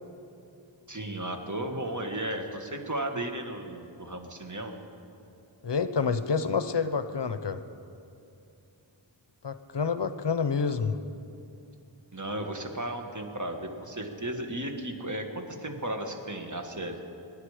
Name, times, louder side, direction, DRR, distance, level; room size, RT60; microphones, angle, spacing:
voice 1, 0.9-4.7 12.1-17.0, right 1 dB, 40° right, 4 dB, 1.6 m, -34 dB
voice 2, 5.6-7.6 9.4-11.0, left 5 dB, 65° left, 11 dB, 0.8 m, -28 dB
26.5 x 10.5 x 4.9 m, 2.7 s
wide cardioid pair, 50°, 46 cm